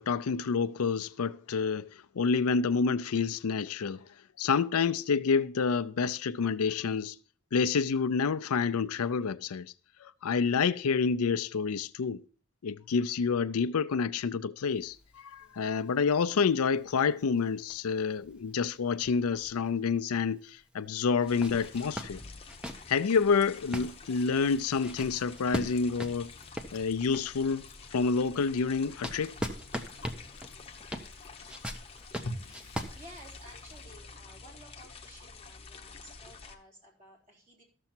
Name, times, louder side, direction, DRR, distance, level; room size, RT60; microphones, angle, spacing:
voice 1, 0.0-1.9 2.1-4.0 4.4-7.2 7.5-9.7 10.0-12.2 12.6-22.2 22.9-26.3 26.7-27.7 27.9-29.3, left 5 dB, 85° left, 0.5 m, -28 dB
sound 1, 14.7-20.0 20.4-20.5 21.1-27.5 28.0-33.8, equal, 5° right, 0.8 m, -41 dB
voice 2, 15.4-15.8 26.9-27.1 32.4-37.6, equal, 35° right, 3.6 m, -55 dB
sound 2, 21.3-36.6, left 4 dB, 25° left, 0.9 m, -49 dB
Chewing mastication, 23.6-33.8, left 1 dB, 55° left, 0.9 m, -50 dB
13.0 x 6.9 x 4.3 m
head